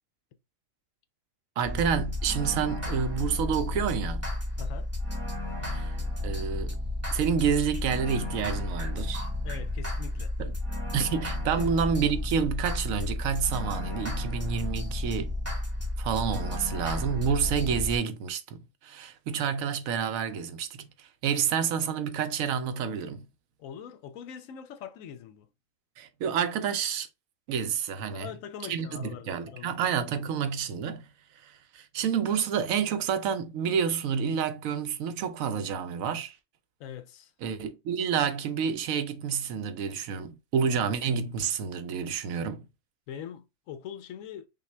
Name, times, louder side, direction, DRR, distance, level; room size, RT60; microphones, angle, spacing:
sound 1, 1.6-18.0, left 1 dB, 10° right, 1.0 m, -32 dB
voice 1, 1.6-4.3 5.7-6.8 7.1-9.2 10.4-10.5 10.9-15.3 16.0-23.3 26.0-27.1 27.5-28.3 28.7-31.1 31.4-36.3 37.4-42.7, right 7 dB, 85° right, 1.1 m, -29 dB
voice 2, 4.6-4.9 9.4-10.3 11.6-11.8 23.6-25.5 28.1-29.9 36.8-37.3 43.1-44.5, left 9 dB, 80° left, 1.0 m, -42 dB
5.7 x 2.2 x 3.2 m
omnidirectional pair, 1.4 m